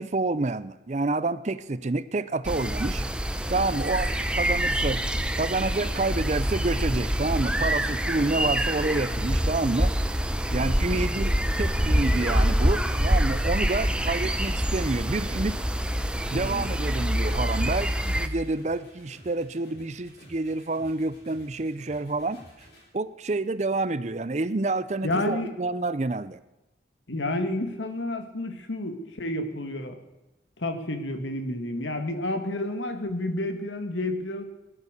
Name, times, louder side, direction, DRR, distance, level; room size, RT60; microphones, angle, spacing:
voice 1, 0.0-3.0 3.5-5.0 5.4-9.9 10.5-15.6 16.3-22.4 22.9-26.4, right 2 dB, 35° right, 15 dB, 0.5 m, -28 dB
sound 1, 2.4-18.3, equal, 5° right, 0.8 m, -26 dB
sound 2, 5.7-22.9, equal, 60° left, 6.6 m, -51 dB
voice 2, 16.3-16.8 25.0-25.5 27.1-30.0 30.6-34.4, left 1 dB, 80° left, 7 dB, 1.8 m, -30 dB
18.5 x 11.0 x 6.6 m, 1.0 s
head